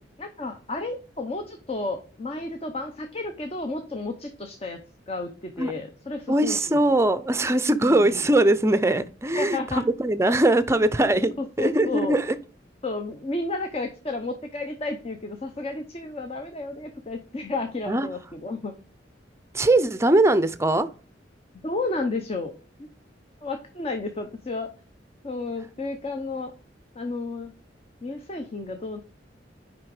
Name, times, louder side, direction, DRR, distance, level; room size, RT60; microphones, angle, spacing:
voice 1, 0.2-4.8 5.1-6.8 7.8-8.3 9.3-9.9 11.4-12.1 12.8-18.8 21.6-22.5 22.8-22.9 23.4-24.7 25.2-26.5 26.9-27.5 28.0-29.0, left 2 dB, 35° left, 0.7 m, -32 dB
voice 2, 6.3-11.3 11.6-12.4 17.9-18.1 19.5-20.9, right 1 dB, 15° right, 0.5 m, -21 dB
6.2 x 5.1 x 4.8 m
head